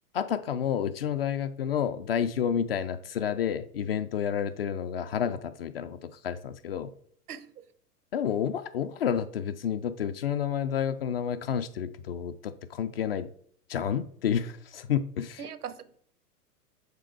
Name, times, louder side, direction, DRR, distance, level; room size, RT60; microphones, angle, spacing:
voice 1, 0.1-6.9 8.1-13.3 13.7-15.4, left 8 dB, 40° left, 0.4 m, -30 dB
voice 2, 7.3-7.7 15.4-16.0, right 7 dB, 70° right, 0.8 m, -41 dB
6.7 x 3.8 x 4.6 m
figure-of-eight pair, 100°, 47 cm